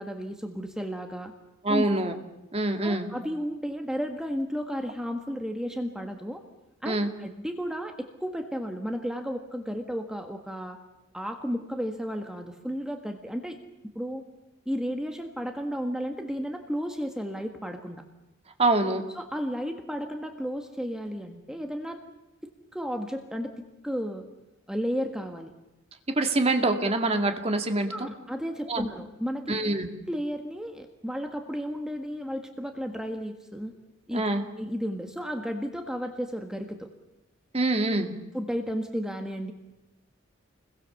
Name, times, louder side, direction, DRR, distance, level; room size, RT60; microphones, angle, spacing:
voice 1, 0.0-1.3 1.7-1.8 2.8-6.4 6.8-10.8 11.1-13.6 13.9-14.2 14.6-18.0 19.1-22.0 22.7-24.2 24.7-25.5 27.9-29.6 30.1-33.7 34.1-34.2 34.6-36.9 38.3-39.5, equal, 5° right, 4 dB, 1.6 m, -33 dB
voice 2, 1.6-2.1 2.5-3.1 6.8-7.1 18.6-19.0 26.1-28.1 28.7-28.8 29.5-29.9 34.1-34.4 37.5-38.1, right 2 dB, 30° right, 5 dB, 2.4 m, -25 dB
29.0 x 22.0 x 7.2 m, 0.95 s
head